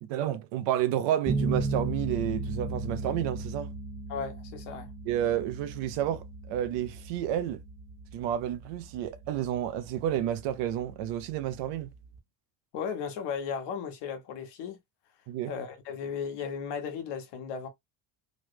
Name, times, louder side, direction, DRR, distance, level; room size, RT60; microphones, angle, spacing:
voice 1, 0.0-3.7 5.1-7.6 8.1-11.9 15.3-15.5, right 11 dB, 75° right, 0.7 m, -30 dB
sound 1, 1.3-12.2, right 2 dB, 10° right, 0.3 m, -37 dB
voice 2, 4.1-4.9 12.7-14.8 15.5-17.7, left 6 dB, 70° left, 1.1 m, -35 dB
3.1 x 2.1 x 3.1 m
cardioid pair, 165°, 43 cm